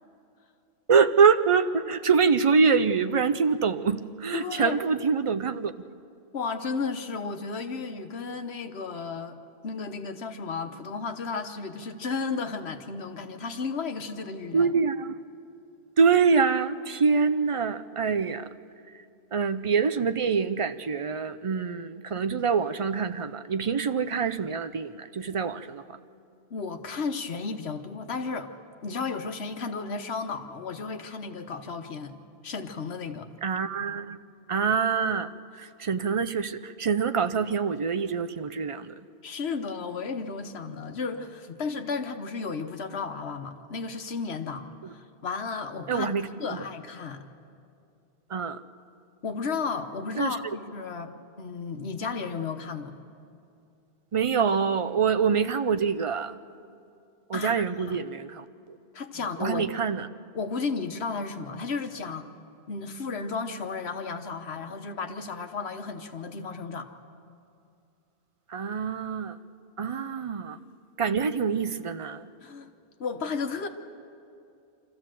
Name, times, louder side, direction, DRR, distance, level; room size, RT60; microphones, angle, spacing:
voice 1, 0.9-5.7 14.5-15.2 16.0-18.5 19.3-25.8 33.4-34.2 34.5-38.9 44.8-44.9 45.9-46.6 48.3-48.6 50.2-50.4 54.1-56.4 57.3-58.4 59.4-60.1 68.5-69.4 69.8-70.6 71.0-72.3, right 5 dB, 40° right, 11 dB, 0.5 m, -25 dB
voice 2, 4.3-4.8 6.3-9.4 9.6-14.7 26.5-28.5 28.8-32.2 32.4-33.3 39.2-44.7 44.9-47.2 49.2-52.9 57.3-58.0 58.9-59.9 60.3-62.3 62.7-66.9 72.4-72.7 73.0-73.7, left 4 dB, 75° left, 7 dB, 1.3 m, -33 dB
25.5 x 14.5 x 7.5 m, 2.5 s
omnidirectional pair, 1.1 m